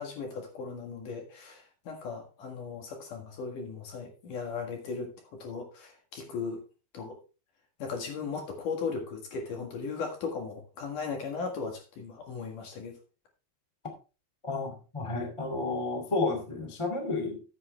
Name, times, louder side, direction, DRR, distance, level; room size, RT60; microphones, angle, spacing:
voice 1, 0.0-6.6 6.9-7.2 7.8-13.0, left 5 dB, 55° left, 3 dB, 2.7 m, -37 dB
voice 2, 14.4-17.4, left 3 dB, 15° left, 3 dB, 0.9 m, -31 dB
13.5 x 7.8 x 3.3 m, 0.33 s
omnidirectional pair, 5.3 m